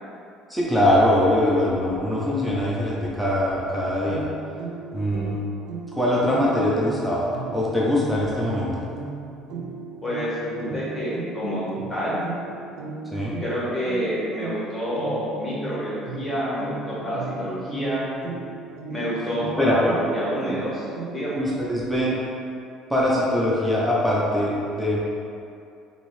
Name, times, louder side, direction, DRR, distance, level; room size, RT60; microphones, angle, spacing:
voice 1, 0.5-4.3 4.9-5.4 5.9-8.7 13.1-13.3 19.6-19.8 21.4-22.2 22.9-25.0, left 1 dB, ahead, -7 dB, 0.5 m, -22 dB
sound 1, 4.0-21.5, right 4 dB, 70° right, 0.4 m, -37 dB
voice 2, 10.0-11.6 11.9-12.2 13.4-18.1 18.9-21.4, equal, 20° left, -8 dB, 1.0 m, -28 dB
3.0 x 2.7 x 3.1 m, 2.5 s
cardioid pair, 125°, 0 cm